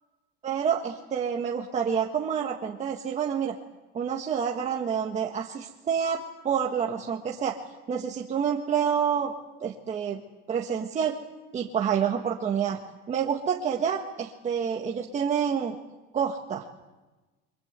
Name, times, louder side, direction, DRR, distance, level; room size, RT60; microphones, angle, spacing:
voice 1, 0.4-3.5 3.9-7.5 7.9-9.3 9.6-10.2 10.5-11.2 11.5-12.8 13.1-15.8 16.1-16.6, right 7 dB, 20° right, 1 dB, 1.6 m, -28 dB
29.5 x 24.5 x 8.3 m, 1.1 s
cardioid pair, 165°, 32 cm